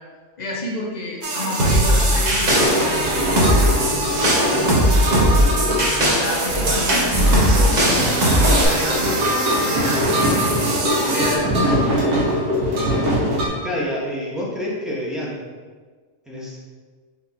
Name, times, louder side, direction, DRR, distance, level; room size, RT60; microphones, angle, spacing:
voice 1, 0.4-5.2 5.7-7.8 8.2-10.5 10.9-11.9, left 1 dB, 70° left, -3 dB, 0.4 m, -30 dB
sound 1, 1.2-11.4, right 3 dB, 65° right, 0.5 m, -26 dB
sound 2, 1.6-8.6, equal, 35° right, 0.8 m, -19 dB
sound 3, 2.5-13.5, equal, 80° right, 1.5 m, -22 dB
voice 2, 13.6-15.4 16.3-16.6, left 1 dB, ahead, -6 dB, 0.3 m, -27 dB
4.3 x 3.0 x 4.1 m, 1.5 s
omnidirectional pair, 1.6 m